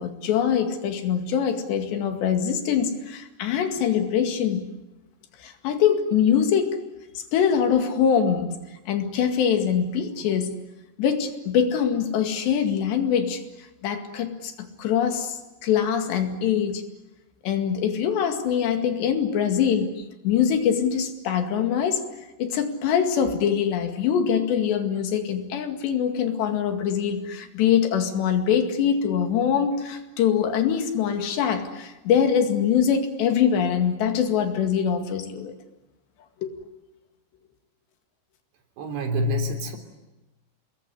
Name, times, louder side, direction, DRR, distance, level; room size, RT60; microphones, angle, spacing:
voice 1, 0.0-4.7 5.4-6.8 7.3-8.6 8.9-10.6 11.0-13.4 13.8-16.8 17.4-22.0 22.4-35.6 36.4-36.5, left 8 dB, 85° left, 6 dB, 4.4 m, -23 dB
voice 2, 38.8-39.8, left 1 dB, 90° right, 4 dB, 5.6 m, -26 dB
28.0 x 21.0 x 9.9 m, 1.0 s
omnidirectional pair, 4.8 m